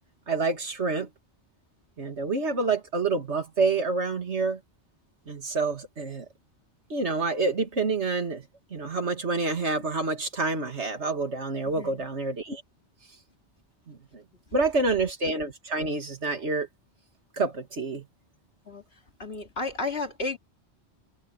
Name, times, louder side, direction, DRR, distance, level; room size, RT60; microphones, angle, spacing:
voice 1, 0.3-1.1 2.0-4.6 5.3-6.3 6.9-8.5 8.7-12.6 13.9-14.2 14.5-16.7 17.3-18.1, right 3 dB, 85° right, 2.7 m, -28 dB
voice 2, 11.7-12.1 18.7-18.8 19.2-20.4, left 3 dB, 65° left, 2.9 m, -32 dB
omnidirectional pair, 1.1 m